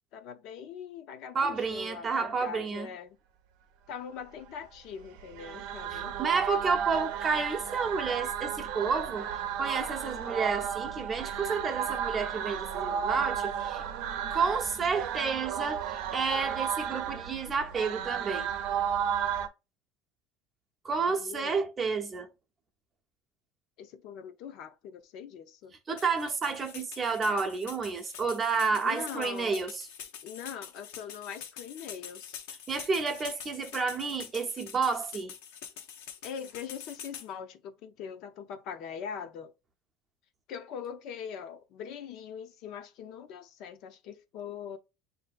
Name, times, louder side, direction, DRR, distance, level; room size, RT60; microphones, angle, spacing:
voice 1, 0.1-3.2 3.9-6.2 21.1-21.6 23.8-25.7 28.7-29.5 30.2-32.4 36.2-39.5 40.5-44.8, left 7 dB, 55° left, 0.6 m, -42 dB
voice 2, 1.3-2.9 5.9-9.3 9.6-13.8 14.3-18.5 20.8-22.3 25.9-29.9 32.7-35.3, right 5 dB, 25° right, 0.6 m, -30 dB
sound 1, 5.1-19.5, right 8 dB, 65° right, 0.6 m, -33 dB
sound 2, 26.0-37.3, left 8 dB, 80° left, 0.8 m, -45 dB
6.6 x 2.7 x 2.4 m
cardioid pair, 140°, 0 cm